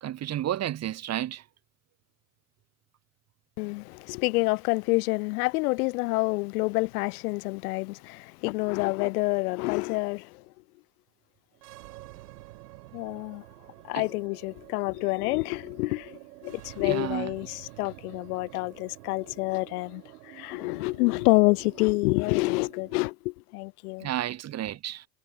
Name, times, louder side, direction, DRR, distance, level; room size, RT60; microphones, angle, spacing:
voice 1, 0.0-1.4 13.9-14.1 16.8-17.3 24.0-25.1, right 12 dB, 35° right, 2.2 m, -31 dB
voice 2, 3.6-10.4 12.9-13.4 13.8-24.1, left 24 dB, 75° left, 0.5 m, -28 dB
sound 1, 11.5-23.0, right 17 dB, 80° right, 7.5 m, -49 dB
supercardioid pair, 120°, 46 cm